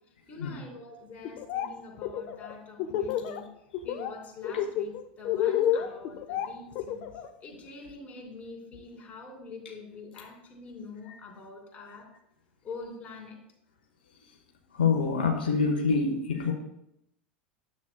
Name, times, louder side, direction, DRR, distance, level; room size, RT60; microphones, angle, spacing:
voice 1, 0.3-3.5 3.8-7.1 7.4-12.1 12.6-13.4, left 3 dB, 30° left, 0 dB, 2.5 m, -45 dB
Laughter, 1.2-1.7 2.0-3.4 3.7-4.1 4.4-7.3, left 10 dB, 55° left, 0.6 m, -29 dB
voice 2, 14.7-16.5, left 5 dB, 80° left, 1 dB, 0.9 m, -26 dB
9.5 x 7.3 x 2.2 m, 0.80 s
hypercardioid pair, 90°, 5 cm